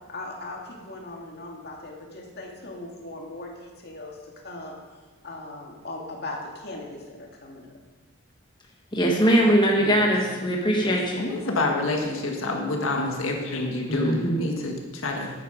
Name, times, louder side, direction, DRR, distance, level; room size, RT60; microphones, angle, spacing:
voice 1, 0.1-4.8 5.2-7.7, left 2 dB, 50° left, 0 dB, 2.2 m, -39 dB
voice 2, 8.9-11.2 13.9-14.4, right 1 dB, 20° left, -1 dB, 1.4 m, -21 dB
voice 3, 10.8-15.3, left 2 dB, 85° left, 1 dB, 1.6 m, -28 dB
11.0 x 9.8 x 5.2 m, 1.3 s
head